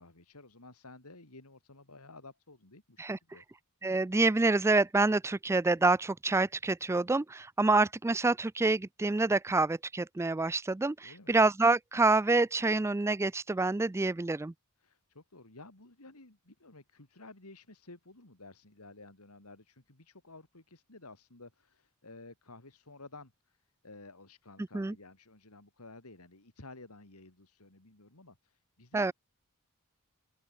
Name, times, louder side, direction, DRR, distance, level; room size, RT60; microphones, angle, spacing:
voice 1, 0.0-3.4 11.0-11.4 14.8-23.6 23.8-29.1, left 2 dB, 85° left, 3.5 m, -53 dB
voice 2, 3.8-14.5 24.7-24.9 28.9-29.1, right 3 dB, 10° right, 0.3 m, -27 dB
open air
head